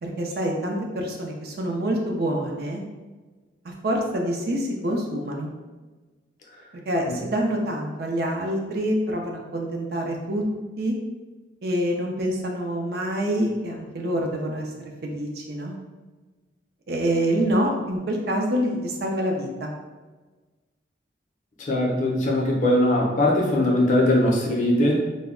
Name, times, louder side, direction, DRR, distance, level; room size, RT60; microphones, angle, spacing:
voice 1, 0.0-2.8 3.6-5.5 6.9-10.4 10.8-10.9 11.6-15.8 16.9-19.7, equal, 55° right, 0 dB, 0.4 m, -26 dB
voice 2, 21.6-25.0, left 1 dB, 40° left, -2 dB, 0.5 m, -20 dB
2.1 x 2.0 x 3.6 m, 1.3 s
head